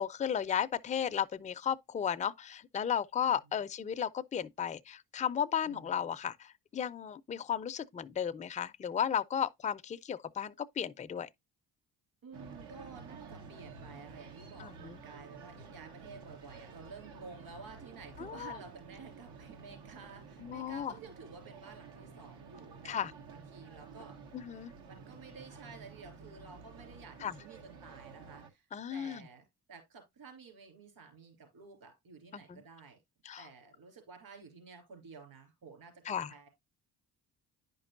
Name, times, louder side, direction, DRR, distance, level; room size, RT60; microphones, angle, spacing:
voice 1, 0.0-11.3 14.6-15.0 18.2-18.6 20.4-20.9 22.8-23.1 24.3-24.7 27.2-27.3 28.7-29.3 32.3-32.6 33.3-33.5 36.1-36.3, left 8 dB, 20° left, 0.4 m, -34 dB
voice 2, 12.2-24.2 24.9-28.6 28.9-33.0 33.4-36.5, right 4 dB, 65° right, 3.3 m, -52 dB
sound 1, 12.3-28.5, right 5 dB, 85° right, 1.1 m, -51 dB
9.6 x 5.3 x 2.5 m
supercardioid pair, 65°, 40 cm